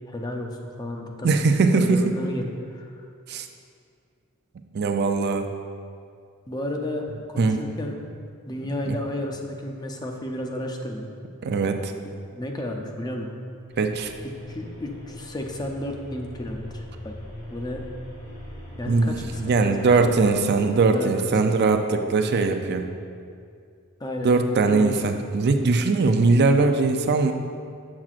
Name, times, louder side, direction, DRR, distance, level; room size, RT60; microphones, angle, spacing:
voice 1, 0.1-1.3 1.7-3.1 6.5-7.9 8.5-11.1 12.3-13.3 14.2-17.1 17.5-17.8 18.8-20.1 20.9-21.3 24.0-24.3 24.6-25.0, left 1 dB, 20° left, 2 dB, 0.5 m, -32 dB
voice 2, 1.2-2.2 3.3-3.5 4.7-5.4 7.4-7.6 8.9-9.0 11.4-11.9 13.8-14.1 18.9-22.9 24.2-27.3, right 3 dB, 50° right, 6 dB, 0.4 m, -21 dB
sound 1, 13.7-20.6, left 1 dB, 50° left, 1.4 m, -41 dB
7.3 x 7.2 x 2.5 m, 2.3 s
head